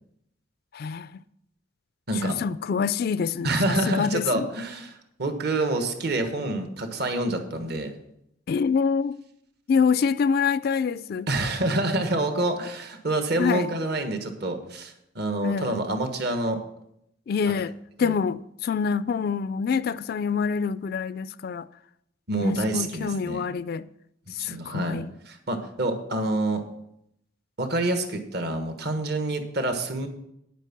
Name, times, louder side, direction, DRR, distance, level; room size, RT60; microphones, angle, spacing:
voice 1, 0.7-1.1 2.2-4.5 8.5-9.2 9.7-11.3 13.4-13.7 15.4-15.8 17.3-21.7 22.4-23.9 24.4-25.1, left 6 dB, 50° left, 0.3 m, -26 dB
voice 2, 2.1-2.4 3.4-7.9 11.3-16.6 17.5-17.6 18.0-18.1 22.3-23.5 24.4-25.0 25.3-26.6 27.6-30.1, right 2 dB, 55° right, 1.4 m, -27 dB
9.6 x 9.1 x 6.0 m
head